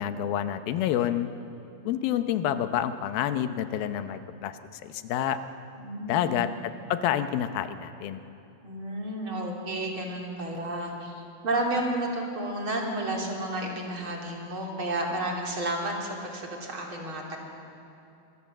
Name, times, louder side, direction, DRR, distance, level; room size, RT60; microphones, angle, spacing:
voice 1, 0.0-1.3 1.9-5.4 6.0-8.2, left 10 dB, 75° left, 10 dB, 2.6 m, -28 dB
voice 2, 5.8-6.4 8.6-17.4, right 1 dB, 35° right, 0 dB, 3.6 m, -31 dB
25.0 x 22.0 x 7.6 m, 2.8 s
omnidirectional pair, 4.4 m